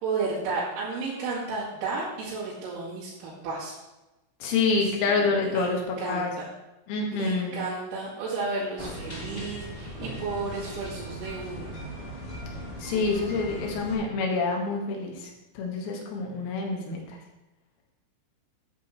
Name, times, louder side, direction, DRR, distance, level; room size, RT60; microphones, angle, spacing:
voice 1, 0.0-3.7 5.5-6.5 7.1-11.7 12.9-13.7, right 3 dB, 80° right, -9 dB, 4.9 m, -33 dB
voice 2, 4.4-6.3 6.9-7.6 12.8-17.2, left 4 dB, 85° left, 0 dB, 4.4 m, -27 dB
sound 1, 8.8-13.9, equal, 60° left, 0.6 m, -38 dB
13.0 x 9.5 x 3.2 m, 1.0 s
omnidirectional pair, 5.9 m